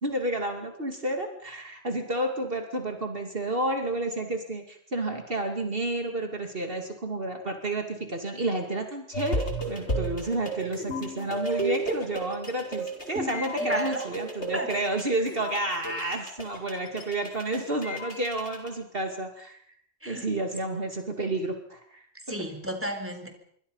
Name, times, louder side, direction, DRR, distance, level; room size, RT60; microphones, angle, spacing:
voice 1, 0.0-19.6 20.1-22.0, right 2 dB, 55° right, 4 dB, 2.7 m, -30 dB
sound 1, 9.1-18.7, right 1 dB, 80° left, 5.0 m, -33 dB
voice 2, 13.6-14.1 14.5-14.7 20.0-20.3 22.3-23.3, right 1 dB, 10° right, 5 dB, 3.9 m, -33 dB
26.5 x 24.0 x 5.6 m, 0.65 s
omnidirectional pair, 1.1 m